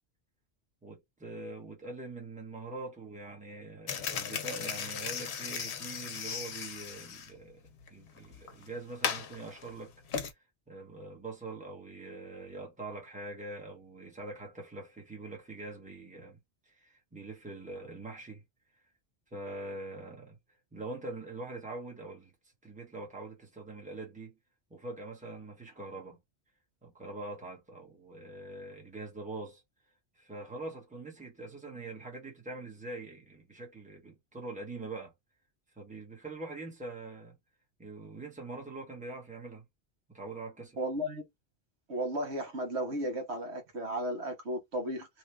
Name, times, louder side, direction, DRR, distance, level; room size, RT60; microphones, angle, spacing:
voice 1, 0.8-9.9 10.2-10.4 10.7-16.4 16.7-18.4 19.3-20.4 20.7-22.3 22.6-24.4 24.7-26.2 26.8-29.6 30.1-35.1 35.8-37.4 37.8-39.6 40.1-40.8, right 2 dB, 5° right, 1.0 m, -43 dB
sound 1, 3.9-10.3, left 7 dB, 85° left, 0.9 m, -37 dB
voice 2, 40.8-41.2 41.9-45.1, right 1 dB, 80° right, 1.4 m, -34 dB
2.9 x 2.3 x 3.3 m
omnidirectional pair, 1.1 m